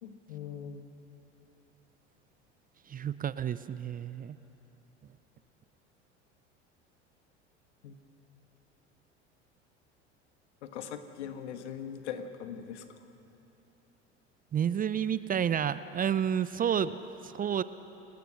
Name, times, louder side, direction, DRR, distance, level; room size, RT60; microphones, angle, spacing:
voice 1, 0.0-0.9 7.8-8.0 10.6-12.8, left 8 dB, 70° left, 8 dB, 1.7 m, -41 dB
voice 2, 2.9-4.4 14.5-17.0 17.2-17.6, right 8 dB, 25° right, 15 dB, 0.6 m, -30 dB
30.0 x 19.0 x 6.5 m, 2.9 s
figure-of-eight pair, 75°, 35 cm